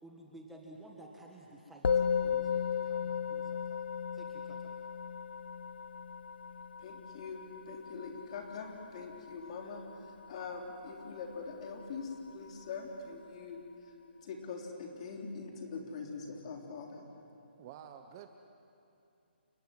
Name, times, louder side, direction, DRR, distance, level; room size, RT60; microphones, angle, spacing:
voice 1, 0.0-3.8 4.1-4.7, right 1 dB, 5° right, -2 dB, 1.8 m, -53 dB
Musical instrument, 1.8-11.4, left 7 dB, 65° left, 0.9 m, -36 dB
voice 2, 6.8-7.4 7.7-9.8 10.3-13.9 14.2-17.2, left 4 dB, 35° left, 1 dB, 3.6 m, -43 dB
voice 3, 17.6-18.3, right 10 dB, 25° right, 7 dB, 0.9 m, -49 dB
30.0 x 16.5 x 9.5 m, 2.7 s
hypercardioid pair, 165°, 6 cm